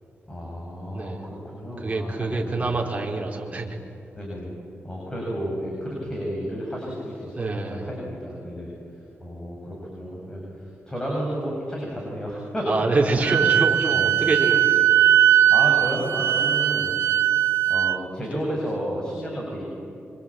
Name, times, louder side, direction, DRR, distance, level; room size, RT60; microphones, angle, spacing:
voice 1, 0.3-2.7 4.1-4.5 4.8-8.7 9.2-10.4 10.9-13.2 13.9-14.1 15.5-16.9 17.7-19.6, equal, 15° left, -3 dB, 7.8 m, -32 dB
voice 2, 0.9-1.3 1.8-3.8 7.4-7.9 12.7-15.3, right 3 dB, 30° right, 0 dB, 4.2 m, -26 dB
Wind instrument woodwind instrument, 13.2-18.0, right 11 dB, 90° right, 0.8 m, -19 dB
25.5 x 25.0 x 9.0 m, 2.7 s
cardioid pair, 95°, 5 cm